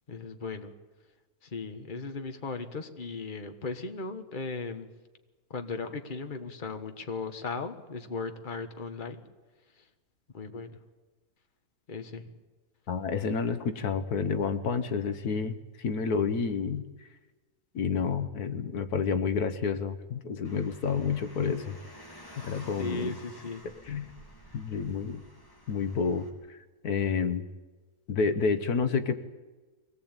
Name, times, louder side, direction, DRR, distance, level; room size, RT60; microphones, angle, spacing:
voice 1, 0.1-0.7 1.4-4.9 5.5-9.2 9.8-9.9 10.3-10.8 11.9-12.3 22.8-23.6, left 4 dB, 35° left, 7 dB, 1.6 m, -37 dB
voice 2, 12.9-17.1 17.7-21.8 22.4-23.1 23.9-24.1 24.5-25.2 25.7-27.4 28.1-29.2, left 5 dB, 80° left, 11 dB, 1.7 m, -29 dB
Car, 20.4-26.3, equal, 15° left, 3.4 m, -51 dB
23.5 x 18.5 x 9.0 m, 1.2 s
omnidirectional pair, 1.6 m